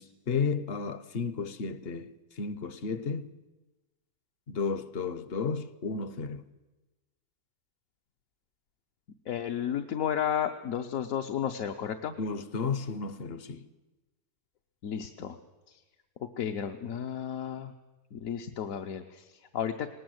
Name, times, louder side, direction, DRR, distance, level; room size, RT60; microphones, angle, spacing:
voice 1, 0.0-3.3 4.5-6.4 12.2-13.7, left 5 dB, 50° left, 0.9 m, -33 dB
voice 2, 9.3-12.1 14.8-15.4 15.7-15.8 16.4-17.7 18.1-19.9, left 9 dB, 70° left, 1.2 m, -33 dB
19.0 x 19.0 x 7.9 m
omnidirectional pair, 1.6 m